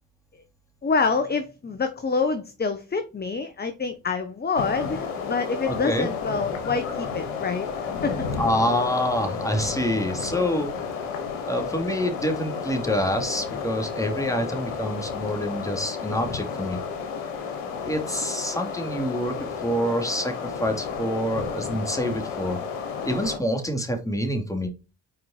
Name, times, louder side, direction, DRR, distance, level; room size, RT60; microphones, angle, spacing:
voice 1, 0.8-8.2, left 4 dB, 25° left, 1.0 m, -27 dB
sound 1, 4.6-23.4, left 6 dB, 90° left, 1.3 m, -32 dB
voice 2, 5.7-6.1 8.4-10.7 11.4-16.8 17.8-22.6 23.0-24.7, equal, 10° left, 2.5 m, -27 dB
5.7 x 4.7 x 4.4 m
hypercardioid pair, 50°, 38 cm